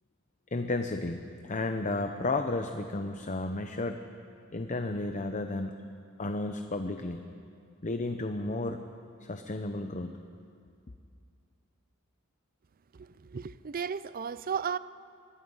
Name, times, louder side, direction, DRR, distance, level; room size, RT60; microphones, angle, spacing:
voice 1, 0.5-4.0 4.5-5.8 6.2-7.2 7.8-8.8 9.2-10.2, left 2 dB, 35° left, 0.8 m, -33 dB
voice 2, 12.9-14.8, right 6 dB, 40° right, 0.5 m, -34 dB
24.5 x 20.5 x 5.6 m
head